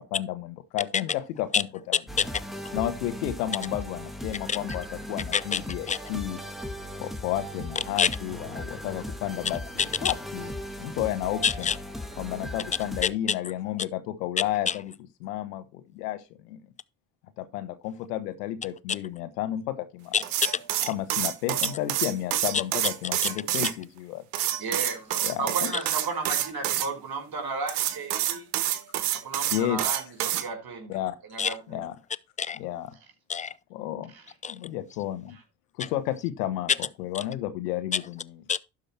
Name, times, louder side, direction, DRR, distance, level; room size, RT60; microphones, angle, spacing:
voice 1, 0.0-1.7 2.7-6.4 6.9-9.6 10.0-10.5 10.8-11.7 12.2-14.9 15.2-16.6 17.4-20.2 20.9-24.2 25.2-25.7 29.5-29.8 30.9-31.2 31.7-31.9 32.5-32.9 33.7-34.1 34.5-35.4 35.8-36.7 37.0-38.3, left 13 dB, 85° left, 1.2 m, -32 dB
sound 1, 2.1-13.1, equal, ahead, 1.9 m, -38 dB
voice 2, 11.4-11.8 13.0-13.4 14.7-14.8 18.9-19.0 20.1-20.9 22.5-22.6 31.4-31.5 32.4-32.6 33.3-33.5 34.4-34.6 35.8-35.9 37.9-38.0 38.5-38.6, left 6 dB, 15° left, 0.5 m, -26 dB
sound 2, 20.2-23.7 24.3-26.9 27.7-30.4, right 13 dB, 85° right, 1.1 m, -27 dB
voice 3, 24.6-28.5 29.2-31.0 31.3-31.9 34.1-34.2, right 4 dB, 50° right, 4.9 m, -34 dB
12.0 x 5.0 x 4.3 m
hypercardioid pair, 55°, 47 cm